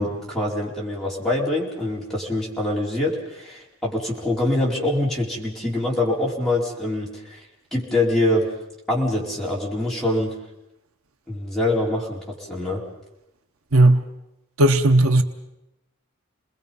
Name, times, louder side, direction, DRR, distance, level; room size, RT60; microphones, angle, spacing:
voice 1, 0.0-7.4 7.7-8.5 8.9-10.3 11.3-12.8, left 1 dB, ahead, -5 dB, 4.6 m, -24 dB
voice 2, 13.7-14.0 14.6-15.2, right 1 dB, 80° right, 7 dB, 1.1 m, -15 dB
29.5 x 21.0 x 5.5 m, 0.90 s
head